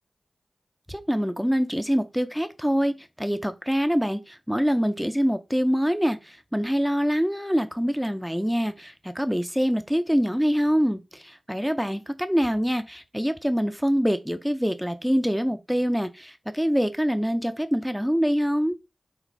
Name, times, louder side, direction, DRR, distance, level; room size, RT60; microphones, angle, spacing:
voice 1, 0.9-18.8, equal, ahead, 0.6 m, -25 dB
4.1 x 2.4 x 4.6 m
cardioid pair, 45°, 0 cm